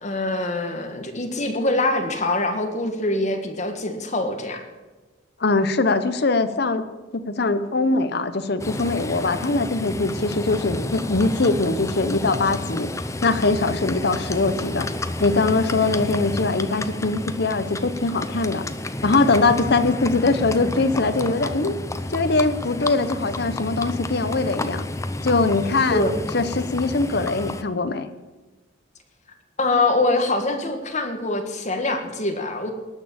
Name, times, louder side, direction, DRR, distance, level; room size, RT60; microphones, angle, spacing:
voice 1, 0.0-4.6 25.9-26.1 29.6-32.7, left 2 dB, 40° left, 5 dB, 1.7 m, -24 dB
voice 2, 5.4-6.8 7.1-12.9 13.2-14.9 15.2-18.6 19.0-21.7 22.1-24.8 25.2-26.0 26.3-28.1, left 3 dB, 60° left, 11 dB, 0.9 m, -22 dB
Livestock farm animals working animals, 8.6-27.6, left 1 dB, 15° left, 0.6 m, -30 dB
18.5 x 6.5 x 8.7 m, 1.2 s
head